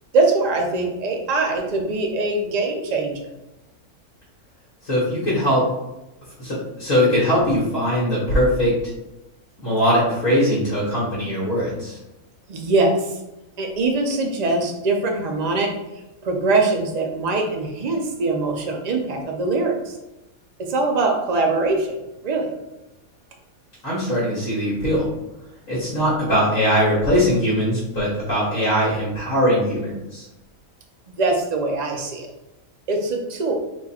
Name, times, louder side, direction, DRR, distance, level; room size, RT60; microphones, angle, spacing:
voice 1, 0.1-3.2 12.5-13.1 13.6-15.7 16.2-20.0 20.6-22.0 22.2-22.5 31.2-32.3 32.9-33.5, right 3 dB, 55° right, 2 dB, 0.4 m, -22 dB
voice 2, 4.8-5.7 6.4-8.9 9.6-12.0 23.8-25.1 25.7-30.3, equal, 60° left, -9 dB, 1.7 m, -21 dB
4.3 x 2.4 x 4.2 m, 0.96 s
omnidirectional pair, 1.6 m